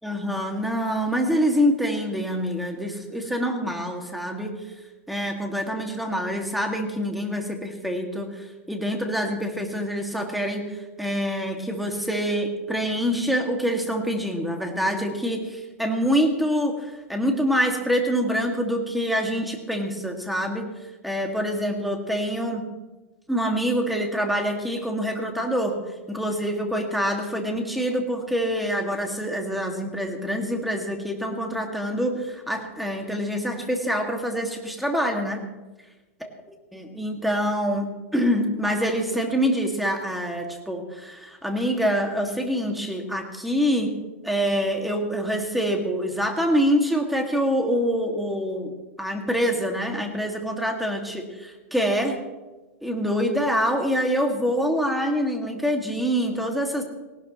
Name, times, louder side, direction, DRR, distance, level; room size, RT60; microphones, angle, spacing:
voice 1, 0.0-4.6 5.1-20.7 21.0-22.7 23.3-25.8 26.1-35.5 36.7-37.8 38.1-44.0 44.2-48.7 49.0-52.2 52.8-56.8, equal, ahead, 2 dB, 2.3 m, -25 dB
18.5 x 18.0 x 3.2 m, 1.2 s
hypercardioid pair, 130°, 8 cm